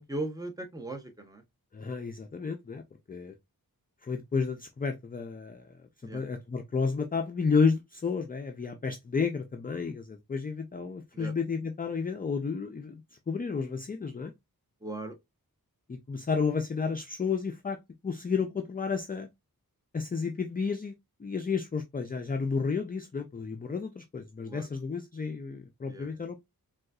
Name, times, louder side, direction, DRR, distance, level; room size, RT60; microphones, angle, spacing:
voice 1, 0.0-1.4 6.0-6.2 11.1-11.3 14.8-15.1 24.4-24.7 25.9-26.2, right 2 dB, 10° right, 0.7 m, -38 dB
voice 2, 1.7-2.8 3.1-3.3 4.0-14.3 15.9-17.8 18.0-19.3 19.9-20.9 21.2-26.4, left 5 dB, 25° left, 0.4 m, -31 dB
3.8 x 2.3 x 2.2 m
wide cardioid pair, 75°, 37 cm